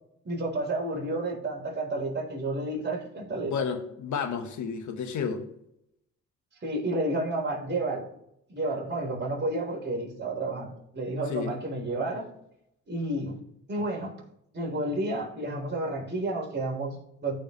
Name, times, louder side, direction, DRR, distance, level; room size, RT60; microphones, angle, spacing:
voice 1, 0.2-3.5 6.6-8.1 8.5-12.2 12.9-13.4 13.7-14.2 14.5-17.3, right 2 dB, 35° right, -2 dB, 3.8 m, -31 dB
voice 2, 3.4-5.5 11.3-11.6, left 6 dB, 75° left, 7 dB, 1.4 m, -31 dB
14.5 x 5.0 x 3.1 m, 0.78 s
cardioid pair, 90°, 30 cm